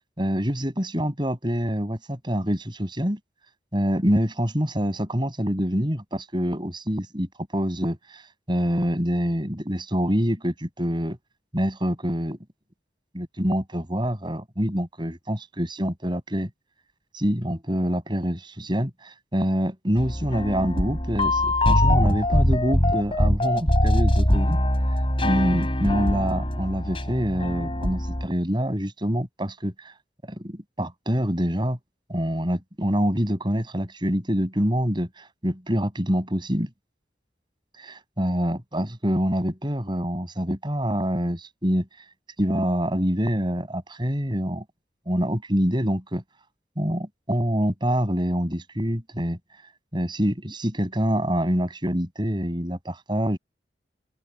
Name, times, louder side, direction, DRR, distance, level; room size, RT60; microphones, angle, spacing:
voice 1, 0.2-3.2 3.7-8.2 8.5-11.2 11.5-12.4 13.1-16.5 17.1-24.6 25.2-29.9 30.3-31.8 32.1-36.7 37.8-41.9 42.4-44.6 45.1-46.2 46.8-49.4 49.9-53.4, equal, 25° right, 7.0 m, -26 dB
sound 1, 20.0-28.3, left 1 dB, 30° left, 6.6 m, -22 dB
open air
head